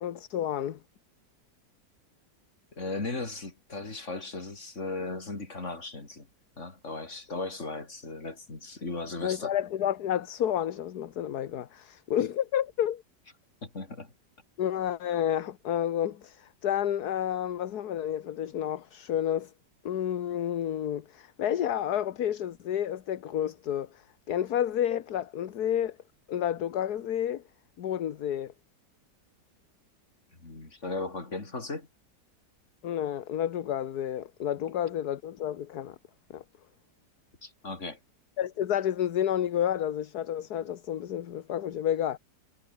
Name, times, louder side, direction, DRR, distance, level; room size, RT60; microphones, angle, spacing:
voice 1, 0.0-0.8 9.2-13.0 14.6-19.5 19.8-24.0 24.3-26.0 26.3-27.4 27.8-28.5 32.8-36.0 36.3-36.4 38.4-42.2, left 10 dB, 65° left, 1.6 m, -30 dB
voice 2, 2.8-6.3 6.6-9.6 13.6-14.1 30.4-31.9 37.4-38.0, left 3 dB, 40° left, 4.1 m, -37 dB
omnidirectional pair, 1.9 m